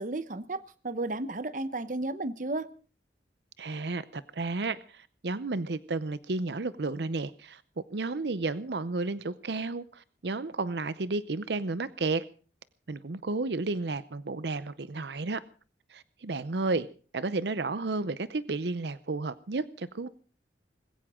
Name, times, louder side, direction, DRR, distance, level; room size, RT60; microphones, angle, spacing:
voice 1, 0.0-2.7, right 2 dB, 45° right, 0.9 m, -33 dB
voice 2, 3.6-7.6 7.9-12.2 12.9-15.4 15.9-16.9 17.1-20.1, right 3 dB, 75° right, 0.7 m, -32 dB
20.5 x 16.5 x 3.7 m
head